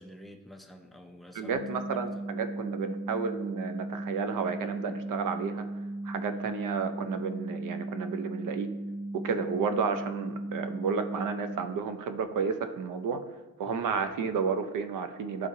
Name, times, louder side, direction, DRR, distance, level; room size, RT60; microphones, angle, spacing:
voice 1, 0.0-2.1 13.7-13.9, equal, ahead, 3 dB, 0.4 m, -48 dB
voice 2, 1.3-5.6 6.0-8.7 9.2-13.2 13.6-15.5, right 5 dB, 70° right, 8 dB, 0.5 m, -32 dB
sound 1, 1.5-11.5, right 1 dB, 45° right, 1.7 m, -37 dB
10.5 x 3.7 x 2.7 m, 1.2 s
wide cardioid pair, 165°, 33 cm